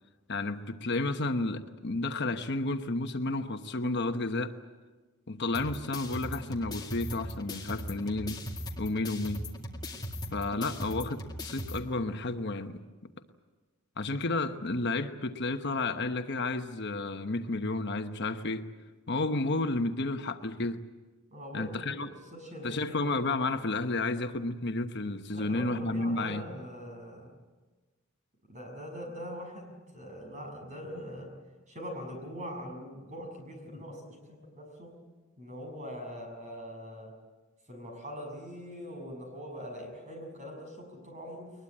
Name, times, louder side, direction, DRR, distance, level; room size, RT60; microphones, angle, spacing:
voice 1, 0.3-4.5 5.3-8.4 8.8-9.5 10.3-12.8 14.0-18.6 19.1-20.8 21.5-22.1 22.6-26.4, left 2 dB, 55° left, 7 dB, 1.1 m, -31 dB
sound 1, 5.5-11.8, left 1 dB, 20° left, 2.1 m, -39 dB
voice 2, 21.3-23.3 25.3-27.3 28.5-31.3 31.7-34.9 35.4-37.1 37.7-41.5, equal, 35° right, 2 dB, 6.7 m, -42 dB
22.0 x 21.0 x 8.7 m, 1.3 s
head